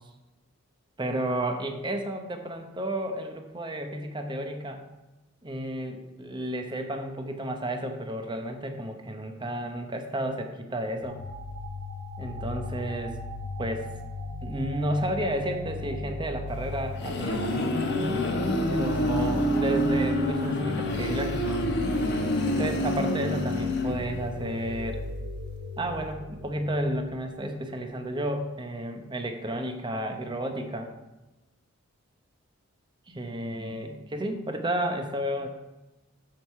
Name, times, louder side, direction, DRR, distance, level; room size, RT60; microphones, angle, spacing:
voice 1, 1.0-4.8 5.4-11.2 12.2-13.2 13.6-13.9 14.4-17.5 18.7-21.7 22.6-25.0 25.8-30.9 33.1-35.5, right 1 dB, 20° right, 5 dB, 0.8 m, -32 dB
sound 1, 11.0-27.4, left 3 dB, 65° right, 1.7 m, -37 dB
sound 2, 16.7-24.4, equal, 50° left, 1.2 m, -27 dB
7.7 x 7.1 x 4.7 m, 1.1 s
head